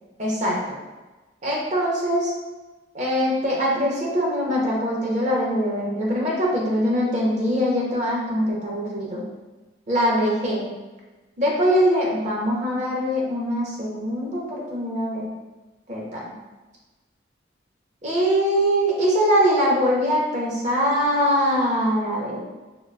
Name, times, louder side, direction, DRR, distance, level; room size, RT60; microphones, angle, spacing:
voice 1, 0.2-0.8 1.4-2.3 2.9-9.2 9.9-10.7 11.4-15.3 15.9-16.3 18.0-22.4, equal, 40° right, -3 dB, 0.6 m, -22 dB
3.7 x 2.3 x 2.2 m, 1.2 s
head